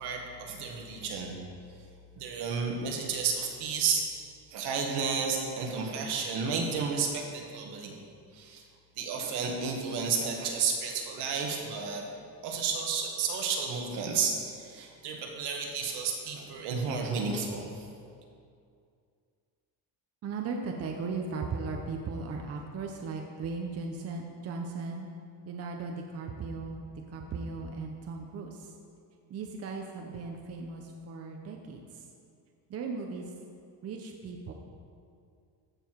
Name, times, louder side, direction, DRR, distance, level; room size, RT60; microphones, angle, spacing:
voice 1, 0.0-1.3 2.2-4.1 4.5-8.0 8.3-8.6 9.0-12.0 12.4-17.9, right 5 dB, 75° right, 1 dB, 1.8 m, -32 dB
voice 2, 20.2-25.1 25.5-28.7 29.3-32.1 32.7-33.3 33.8-34.5, right 4 dB, 35° right, 2 dB, 0.8 m, -37 dB
14.0 x 7.0 x 4.7 m, 2.3 s
cardioid pair, 165°, 41 cm